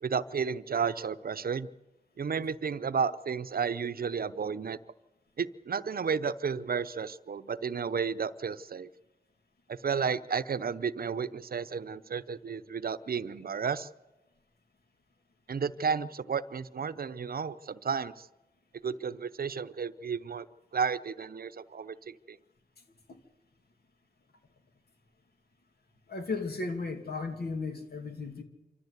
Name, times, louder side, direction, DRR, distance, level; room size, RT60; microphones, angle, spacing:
voice 1, 0.0-1.7 2.2-4.8 5.4-8.9 9.7-13.9 15.5-18.3 18.8-20.5 20.7-22.4, right 6 dB, 65° right, 14 dB, 0.7 m, -32 dB
voice 2, 26.1-28.4, left 3 dB, 70° left, 5 dB, 2.7 m, -35 dB
26.5 x 13.5 x 8.2 m, 1.1 s
cardioid pair, 60°, 17 cm